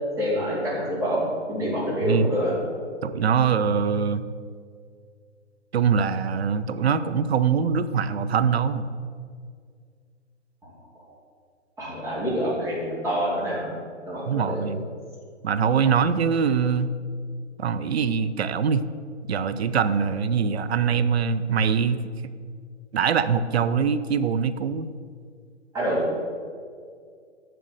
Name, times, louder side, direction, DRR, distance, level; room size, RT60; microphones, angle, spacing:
voice 1, 0.2-1.2 1.5-2.5 10.6-10.7 11.8-13.8 14.1-14.7 15.8-15.9 25.7-26.0, equal, 10° right, -7 dB, 2.4 m, -26 dB
voice 2, 3.0-4.2 5.7-8.9 14.3-14.8 15.4-16.9 17.6-18.8 19.3-22.0 22.9-24.9, right 6 dB, 60° right, 12 dB, 0.6 m, -23 dB
7.6 x 6.7 x 6.5 m, 2.1 s
hypercardioid pair, 145°, 37 cm